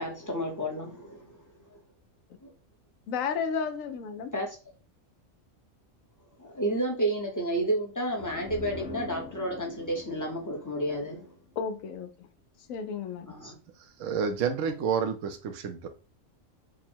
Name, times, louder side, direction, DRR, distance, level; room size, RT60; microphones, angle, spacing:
voice 1, 0.0-1.4 1.7-1.8 2.4-2.5 4.3-4.6 6.4-11.3 13.3-13.6, right 1 dB, 20° left, 0.7 m, -31 dB
voice 2, 3.1-4.3 11.6-12.1 12.7-13.3, left 6 dB, 80° left, 1.0 m, -32 dB
sound 1, 8.1-11.8, left 2 dB, 50° left, 1.0 m, -43 dB
voice 3, 14.0-15.9, right 6 dB, 70° right, 1.0 m, -29 dB
3.7 x 2.1 x 4.4 m
omnidirectional pair, 1.4 m